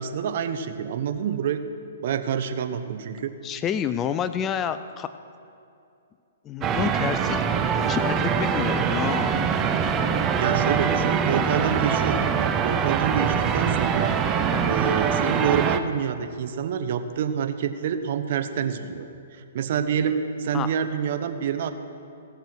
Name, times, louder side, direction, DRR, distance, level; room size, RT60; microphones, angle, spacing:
voice 1, 0.0-1.6 2.0-3.3 10.4-14.1 14.6-21.7, right 7 dB, 55° right, 9 dB, 0.9 m, -27 dB
voice 2, 3.4-5.1 6.4-7.4 7.7-9.4 14.5-14.8 20.5-20.7, left 8 dB, 20° left, 12 dB, 0.4 m, -29 dB
sound 1, 6.6-15.8, right 7 dB, 25° right, 0.6 m, -23 dB
17.0 x 6.9 x 6.0 m, 2.6 s
hypercardioid pair, 135°, 0 cm